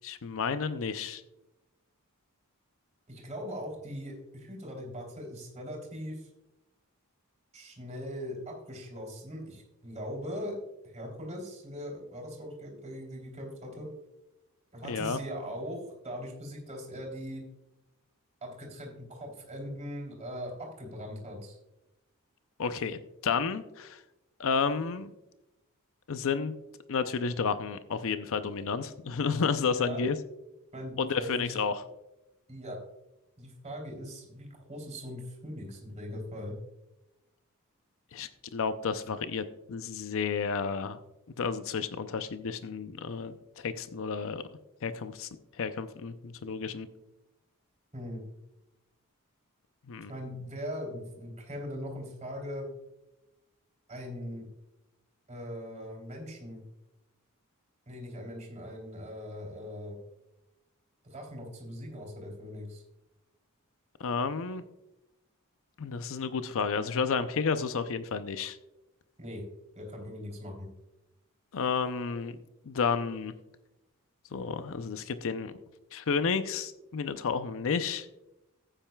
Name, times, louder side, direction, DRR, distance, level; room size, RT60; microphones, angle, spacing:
voice 1, 0.0-1.2 14.9-15.2 22.6-24.0 24.4-25.1 26.1-26.6 26.9-30.2 31.0-31.8 38.1-41.0 41.4-44.4 44.8-45.3 45.6-46.9 49.9-50.1 64.0-64.6 65.8-68.6 71.5-72.4 72.7-73.3 74.3-75.5 75.9-78.1, left 5 dB, 65° left, 11 dB, 0.5 m, -31 dB
voice 2, 3.1-6.3 7.5-10.6 10.8-13.9 14.7-17.5 18.4-21.5 29.6-30.0 30.7-31.6 32.5-32.8 33.4-36.6 47.9-48.2 50.1-52.7 53.9-54.4 55.3-56.6 57.9-60.0 61.0-62.8 69.2-69.4 69.7-70.7, equal, 30° right, -1 dB, 3.3 m, -40 dB
14.5 x 8.9 x 2.3 m, 0.93 s
head